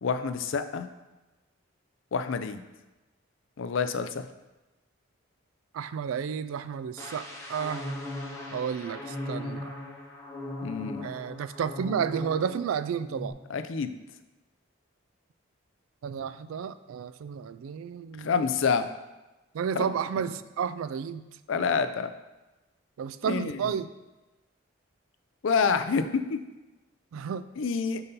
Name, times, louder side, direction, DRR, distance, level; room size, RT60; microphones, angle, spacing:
voice 1, 0.0-0.9 2.1-2.6 3.6-4.2 10.6-11.1 13.5-13.9 18.2-18.9 19.8-19.9 21.5-22.1 23.2-23.7 25.4-26.4 27.6-28.0, left 5 dB, 70° left, 9 dB, 0.4 m, -27 dB
voice 2, 5.7-7.8 8.5-9.7 11.0-13.4 16.0-18.3 19.5-21.2 23.0-23.9 27.1-27.4, right 7 dB, 80° right, 14 dB, 0.3 m, -32 dB
sound 1, 7.0-12.7 13.0-13.3, left 1 dB, 15° left, 0.7 m, -38 dB
5.6 x 4.0 x 5.4 m, 1.1 s
head